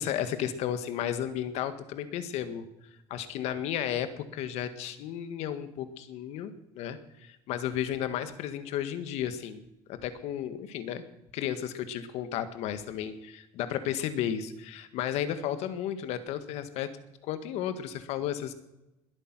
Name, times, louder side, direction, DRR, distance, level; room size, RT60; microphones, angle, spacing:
voice 1, 0.0-2.7 3.1-9.6 9.9-11.0 11.3-16.9 17.2-18.5, left 10 dB, 75° left, 11 dB, 1.6 m, -33 dB
21.0 x 8.6 x 6.1 m, 0.92 s
cardioid pair, 130°, 11 cm